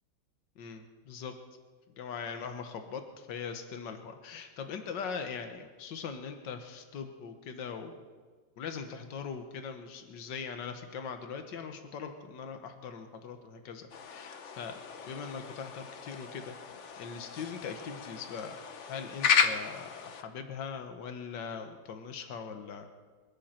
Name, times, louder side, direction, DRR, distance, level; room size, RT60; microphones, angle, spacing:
voice 1, 0.6-1.3 2.0-8.1 8.6-16.6 17.0-18.6 18.9-22.9, left 6 dB, 65° left, 6 dB, 1.9 m, -41 dB
sound 1, 13.9-20.2, left 6 dB, 50° left, 1.0 m, -34 dB
26.0 x 12.5 x 4.5 m, 1.5 s
omnidirectional pair, 2.2 m